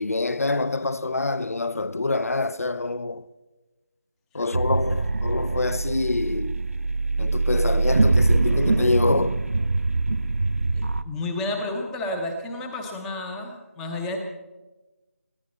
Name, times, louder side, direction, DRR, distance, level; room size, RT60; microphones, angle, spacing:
voice 1, 0.0-3.3 4.3-6.6 7.2-9.4, left 3 dB, 70° left, 0.7 m, -26 dB
sound 1, 4.5-11.0, right 3 dB, 65° right, 0.7 m, -23 dB
voice 2, 11.0-14.2, left 2 dB, 5° left, 0.6 m, -31 dB
21.5 x 15.0 x 4.2 m
figure-of-eight pair, 170°, 8 cm